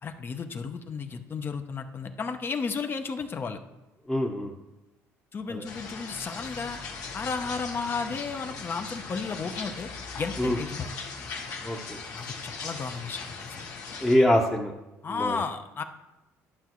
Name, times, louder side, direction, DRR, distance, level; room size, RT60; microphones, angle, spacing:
voice 1, 0.0-3.6 5.3-6.8 7.1-9.9 10.1-10.9 12.1-13.7 15.0-15.8, left 5 dB, 35° left, 7 dB, 0.7 m, -33 dB
voice 2, 4.1-4.5 5.5-5.6 10.4-10.6 11.6-12.0 14.0-14.7 15.1-15.4, left 1 dB, 10° left, -3 dB, 0.9 m, -24 dB
sound 1, 5.6-14.1, left 4 dB, 75° left, 1.4 m, -39 dB
11.5 x 5.6 x 3.1 m, 0.99 s
supercardioid pair, 90°, 6 cm